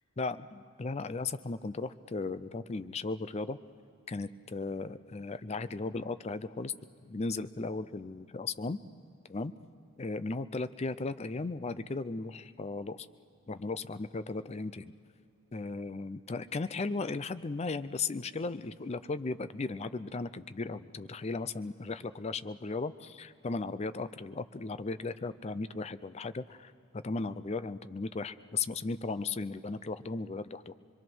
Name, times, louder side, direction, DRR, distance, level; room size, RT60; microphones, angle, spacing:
voice 1, 0.2-3.6 4.1-6.7 7.0-8.8 9.3-9.5 10.0-13.1 13.5-14.9 15.5-26.7 27.0-30.7, left 3 dB, 30° left, 13 dB, 0.5 m, -36 dB
25.0 x 22.5 x 6.2 m, 2.4 s
head